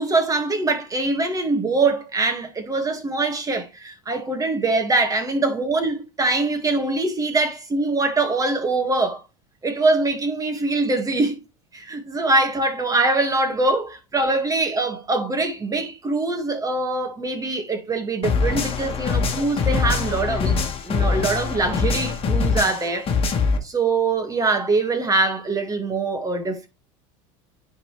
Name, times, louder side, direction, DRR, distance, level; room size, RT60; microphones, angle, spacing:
voice 1, 0.0-9.2 9.6-11.4 11.7-23.1 23.6-26.7, right 3 dB, 20° right, 1.9 m, -23 dB
sound 1, 18.2-23.6, left 5 dB, 35° left, 1.7 m, -23 dB
9.8 x 4.0 x 3.2 m
supercardioid pair, 100°, 17 cm